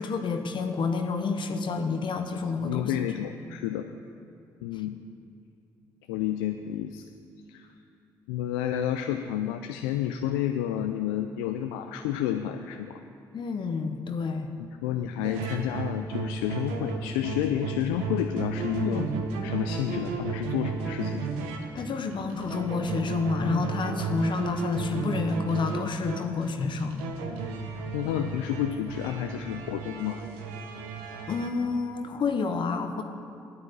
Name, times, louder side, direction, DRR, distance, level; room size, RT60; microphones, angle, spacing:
voice 1, 0.0-2.9 13.3-14.5 18.8-19.1 21.7-27.1 31.3-33.0, left 4 dB, 55° left, 6 dB, 0.9 m, -29 dB
voice 2, 2.6-3.9 4.6-5.0 6.1-7.1 7.5-7.7 8.3-13.0 14.6-19.1 19.4-21.3 27.9-30.2, left 11 dB, 90° left, 7 dB, 0.4 m, -30 dB
sound 1, 15.2-31.5, right 4 dB, 85° right, 1.0 m, -34 dB
9.6 x 9.0 x 8.3 m, 2.5 s
hypercardioid pair, 50°, 10 cm